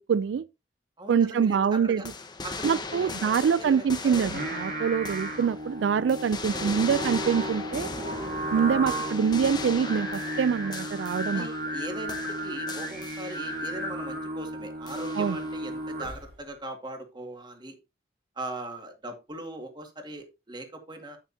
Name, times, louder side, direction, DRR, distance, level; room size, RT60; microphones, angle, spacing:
voice 1, 0.1-0.5 1.1-2.0 2.6-7.9 8.5-11.5 15.2-15.4, right 7 dB, 85° right, 0.3 m, -25 dB
voice 2, 1.0-2.1 2.4-4.3 6.5-7.0 7.4-7.7 8.5-8.9 10.6-10.8 11.3-17.8 18.4-21.2, right 1 dB, 25° right, 2.0 m, -40 dB
sound 1, 2.0-5.8 6.1-11.8 12.1-13.7 14.9-15.6, left 3 dB, 25° left, 1.0 m, -38 dB
Singing, 4.2-16.4, equal, 55° right, 3.6 m, -34 dB
9.1 x 9.0 x 2.7 m
head